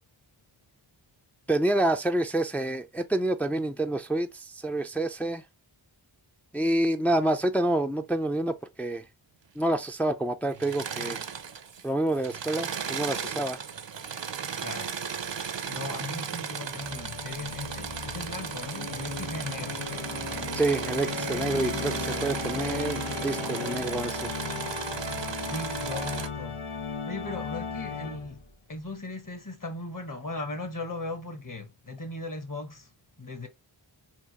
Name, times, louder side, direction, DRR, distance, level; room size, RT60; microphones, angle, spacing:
voice 1, 1.5-5.4 6.5-9.0 9.6-11.2 11.8-13.6 20.6-24.3, right 1 dB, 5° left, 0.4 m, -28 dB
Engine / Mechanisms, 10.5-11.8 12.1-26.3, right 7 dB, 65° right, 0.7 m, -36 dB
voice 2, 14.6-15.4 15.7-19.8 25.4-28.4 28.7-32.9 33.2-33.5, left 2 dB, 40° left, 1.4 m, -38 dB
Organ, 16.7-28.5, left 4 dB, 85° left, 0.8 m, -36 dB
4.5 x 2.6 x 2.9 m
wide cardioid pair, 50°, 48 cm